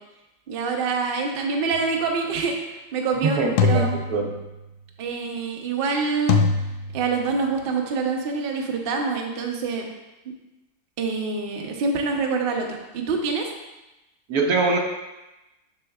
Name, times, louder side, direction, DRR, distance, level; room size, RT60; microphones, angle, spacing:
voice 1, 0.5-2.5 2.9-4.0 5.0-6.4 6.9-9.9 11.0-13.5, right 4 dB, 50° right, 1 dB, 0.8 m, -26 dB
sound 1, 1.7-2.0 3.6-4.7 6.3-7.5, left 5 dB, 70° left, 0.9 m, -24 dB
voice 2, 3.2-4.3 14.3-14.8, right 3 dB, 85° right, 1 dB, 1.3 m, -23 dB
6.9 x 6.1 x 2.3 m, 1.0 s
omnidirectional pair, 1.5 m